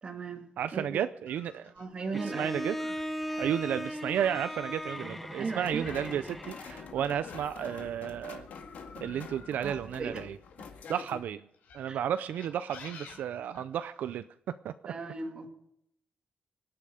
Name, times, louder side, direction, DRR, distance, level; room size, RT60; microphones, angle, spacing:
voice 1, 0.0-0.4 0.7-1.0 1.8-2.5 5.4-5.9 9.6-10.2 11.9-12.0 14.9-15.5, right 4 dB, 35° right, 4 dB, 2.1 m, -37 dB
voice 2, 0.6-1.7 2.2-2.8 3.4-8.5 9.0-10.4 10.9-11.4 11.7-14.3 14.6-14.9, right 9 dB, 80° right, 12 dB, 0.4 m, -33 dB
sound 1, 1.3-8.1 8.5-10.8 11.5-14.2, left 5 dB, 85° left, 4.5 m, -51 dB
Bowed string instrument, 2.1-7.0, equal, 5° left, 0.8 m, -38 dB
sound 2, 5.6-11.2, left 6 dB, 65° left, 2.0 m, -47 dB
24.5 x 8.7 x 5.0 m, 0.77 s
wide cardioid pair, 150°, 3 cm